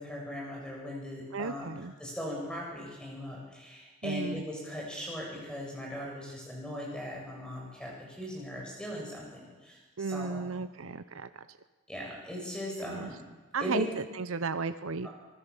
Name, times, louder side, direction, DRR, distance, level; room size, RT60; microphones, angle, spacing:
voice 1, 0.0-1.7 2.0-10.4 11.9-13.2 13.6-13.9 15.0-15.1, equal, 5° left, -2 dB, 7.7 m, -39 dB
voice 2, 1.3-1.9 4.0-4.4 10.0-11.3 12.8-13.1 13.5-15.1, right 4 dB, 80° right, 11 dB, 0.8 m, -34 dB
25.5 x 17.5 x 7.2 m, 1.3 s
head